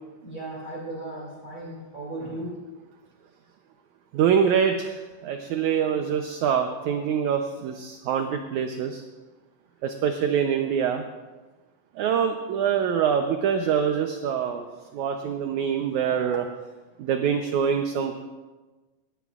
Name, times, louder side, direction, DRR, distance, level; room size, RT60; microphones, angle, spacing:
voice 1, 0.2-2.5, right 1 dB, 35° right, -4 dB, 3.4 m, -36 dB
voice 2, 4.1-9.0 9.8-11.0 12.0-14.7 14.9-16.5 17.0-18.3, right 7 dB, 75° right, 5 dB, 1.9 m, -25 dB
19.5 x 17.5 x 2.4 m, 1.2 s
omnidirectional pair, 3.9 m